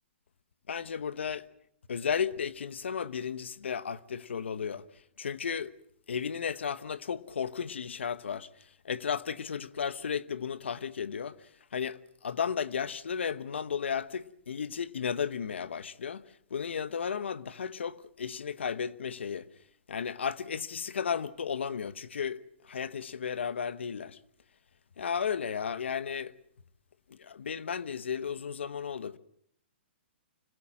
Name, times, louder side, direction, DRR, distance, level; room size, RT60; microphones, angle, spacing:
voice 1, 0.7-1.5 1.9-4.9 5.2-5.7 6.1-16.2 16.5-19.5 19.9-24.2 25.0-26.3 27.1-29.2, left 7 dB, 85° left, 1.1 m, -34 dB
25.5 x 20.0 x 7.5 m
hypercardioid pair, 145°, 6 cm